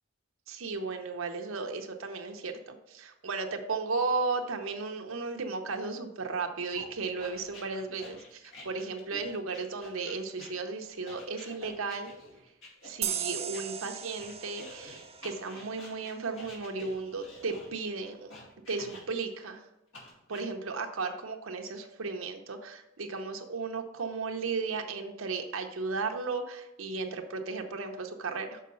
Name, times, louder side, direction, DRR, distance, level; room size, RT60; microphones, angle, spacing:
voice 1, 0.5-12.1 12.8-18.3 18.7-19.7 20.3-28.6, right 4 dB, 85° right, 4 dB, 0.8 m, -35 dB
sound 1, 6.7-13.6 14.2-19.4 19.9-20.4, left 1 dB, 70° left, 2.3 m, -49 dB
sound 2, 13.0-16.4, right 9 dB, 30° right, 0.4 m, -38 dB
6.6 x 4.7 x 5.4 m, 0.90 s
head